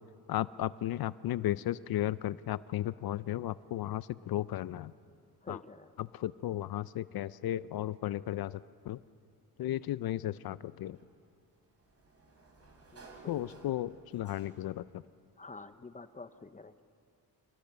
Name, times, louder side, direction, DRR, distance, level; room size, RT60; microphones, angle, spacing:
voice 1, 0.3-4.9 5.5-5.6 6.0-9.0 9.6-11.0 13.3-15.0, left 13 dB, 65° left, 17 dB, 0.5 m, -35 dB
voice 2, 5.4-5.9 12.9-13.7 15.4-16.8, left 3 dB, 20° left, 12 dB, 0.7 m, -48 dB
Sliding door, 10.9-14.9, right 3 dB, 40° right, 4.8 m, -57 dB
27.0 x 21.0 x 6.8 m, 2.4 s
cardioid pair, 110°, 39 cm